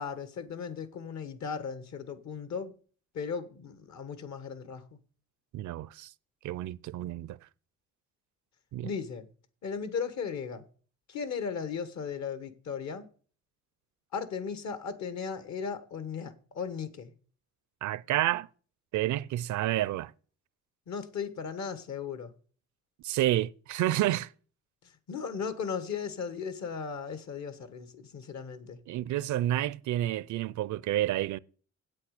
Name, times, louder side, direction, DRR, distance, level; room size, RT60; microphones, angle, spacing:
voice 1, 0.0-2.7 3.1-5.0 8.8-9.3 9.6-10.6 11.1-13.1 14.1-17.1 20.9-22.3 24.8-28.8, left 6 dB, 65° left, 1.5 m, -36 dB
voice 2, 5.5-6.1 6.4-7.4 8.7-8.9 17.8-18.5 18.9-20.1 23.0-24.3 28.9-31.4, right 14 dB, 70° right, 0.5 m, -29 dB
8.6 x 8.3 x 6.5 m
cardioid pair, 90°, 30 cm